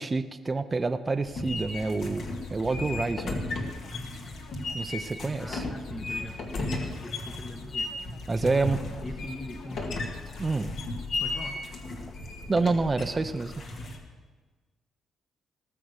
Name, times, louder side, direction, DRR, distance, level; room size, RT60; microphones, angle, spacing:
voice 1, 0.0-2.2 2.5-3.4 4.7-5.6 8.3-8.8 10.4-10.7 12.5-13.5, right 3 dB, 25° right, 9 dB, 0.6 m, -28 dB
sound 1, 1.2-14.0, left 2 dB, 65° left, 2.1 m, -35 dB
sound 2, 1.4-11.8, left 6 dB, 80° left, 1.3 m, -52 dB
voice 2, 5.0-10.0 11.2-11.6, left 2 dB, 25° left, 3 dB, 1.1 m, -42 dB
18.5 x 6.8 x 6.5 m, 1.4 s
cardioid pair, 90°, 0 cm